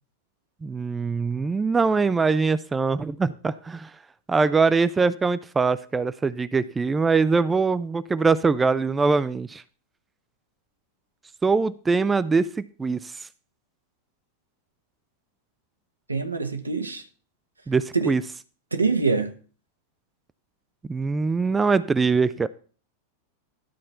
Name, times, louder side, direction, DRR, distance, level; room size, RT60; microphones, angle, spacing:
voice 1, 0.6-4.0 4.3-9.6 11.4-13.3 17.7-18.2 20.9-22.5, right 4 dB, 15° right, 0.4 m, -23 dB
voice 2, 16.1-17.0 17.9-18.1 18.7-19.3, right 4 dB, 80° right, 1.2 m, -24 dB
12.0 x 4.3 x 6.7 m
figure-of-eight pair, 90°, 0 cm